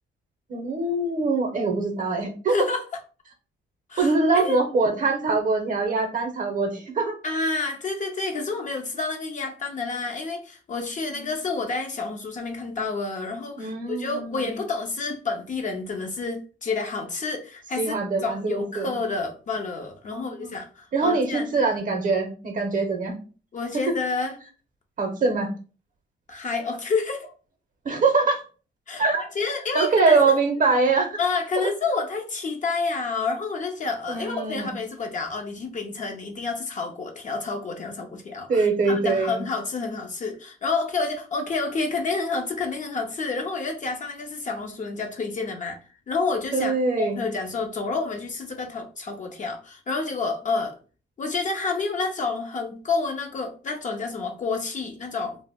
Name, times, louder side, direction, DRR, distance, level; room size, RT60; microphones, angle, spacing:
voice 1, 0.5-2.5 4.0-7.2 11.1-11.3 13.6-14.6 17.8-18.9 20.1-20.5 20.9-23.2 25.0-25.5 27.8-28.4 29.0-29.3 29.7-31.2 31.6-31.7 34.1-34.7 38.5-39.4 46.5-47.2, right 3 dB, 40° right, 4 dB, 0.6 m, -23 dB
voice 2, 2.5-2.8 3.9-4.6 7.2-21.4 23.5-24.4 26.3-27.3 28.9-30.4 31.2-45.8 46.1-50.8 51.2-55.4, left 4 dB, 40° left, 3 dB, 0.5 m, -29 dB
2.1 x 2.0 x 3.4 m, 0.37 s
cardioid pair, 90°, 20 cm